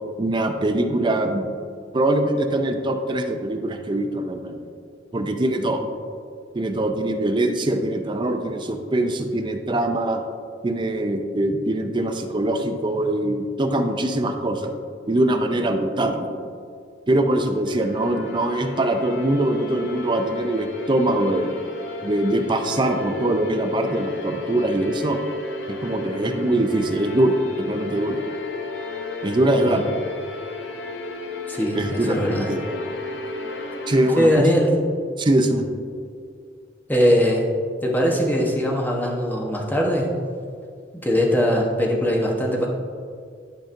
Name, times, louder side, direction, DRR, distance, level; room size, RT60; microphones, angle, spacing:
voice 1, 0.2-1.5 1.9-4.6 5.1-5.8 6.5-10.2 10.6-14.7 15.1-16.5 17.1-21.6 22.0-25.2 25.7-28.2 29.2-29.9 31.7-32.8 33.9-34.4 35.2-35.7, right 1 dB, 25° right, 5 dB, 0.5 m, -22 dB
sound 1, 17.7-34.4, left 3 dB, 80° left, 0.8 m, -33 dB
voice 2, 29.5-29.8 31.5-32.5 34.2-34.7 36.9-37.5 37.8-40.1 41.0-42.7, equal, 10° left, -2 dB, 1.0 m, -21 dB
11.5 x 5.1 x 2.6 m, 2.2 s
head